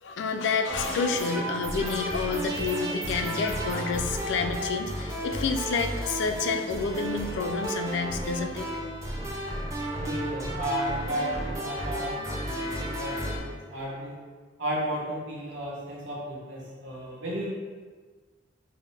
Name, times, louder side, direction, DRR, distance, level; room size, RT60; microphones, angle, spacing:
voice 1, 0.0-8.7, left 4 dB, 65° left, 6 dB, 0.3 m, -29 dB
sound 1, 0.7-13.4, equal, 15° right, 0.4 m, -33 dB
voice 2, 10.0-14.2 14.6-17.5, right 1 dB, 80° right, -5 dB, 1.1 m, -34 dB
4.7 x 2.0 x 3.2 m, 1.4 s
head